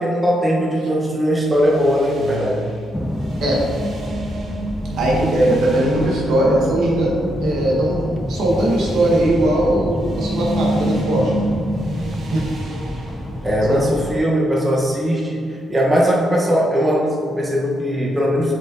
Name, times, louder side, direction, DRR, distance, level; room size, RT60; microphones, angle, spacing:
voice 1, 0.0-2.7 13.4-18.5, equal, 20° right, -4 dB, 1.2 m, -19 dB
sound 1, 1.3-15.0, right 3 dB, 55° right, 1.1 m, -30 dB
sound 2, 2.9-14.2, equal, 5° left, 0.3 m, -27 dB
voice 2, 5.0-7.1 7.4-11.3 12.3-12.5 13.7-14.0, right 1 dB, 75° right, -4 dB, 1.6 m, -19 dB
7.4 x 5.4 x 2.8 m, 2.3 s
cardioid pair, 90°, 0 cm